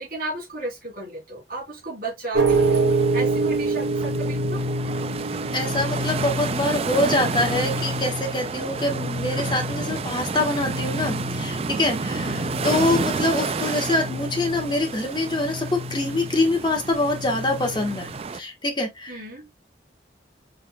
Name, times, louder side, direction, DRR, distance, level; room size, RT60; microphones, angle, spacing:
voice 1, 0.0-2.9 3.1-4.6 12.1-12.4 19.1-19.5, right 2 dB, 50° right, 2.8 m, -34 dB
sound 1, 2.3-18.2, right 2 dB, 75° right, 1.5 m, -28 dB
sound 2, 2.5-18.4, right 4 dB, 30° right, 0.3 m, -30 dB
voice 2, 5.5-18.1 18.3-19.2, left 2 dB, 25° left, 1.2 m, -25 dB
6.7 x 3.6 x 2.2 m
head